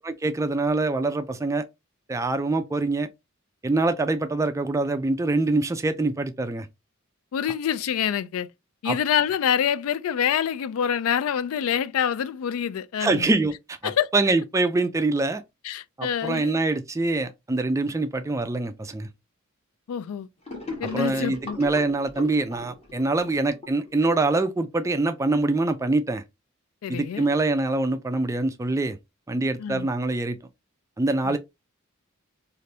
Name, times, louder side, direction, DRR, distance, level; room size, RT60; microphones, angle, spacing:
voice 1, 0.0-1.6 2.1-3.1 3.6-6.7 8.9-9.0 13.0-15.4 16.0-19.1 20.9-26.2 26.9-29.0 29.3-30.4 31.0-31.4, right 2 dB, 15° right, 0.3 m, -24 dB
voice 2, 7.3-8.5 8.8-13.3 13.8-14.1 15.6-16.6 19.9-20.3 20.8-21.6 26.8-27.3 29.6-29.9 31.2-31.4, left 8 dB, 85° left, 0.3 m, -26 dB
Gurgling / Sink (filling or washing), 20.5-24.9, left 2 dB, 30° left, 1.2 m, -39 dB
3.3 x 2.5 x 2.7 m
head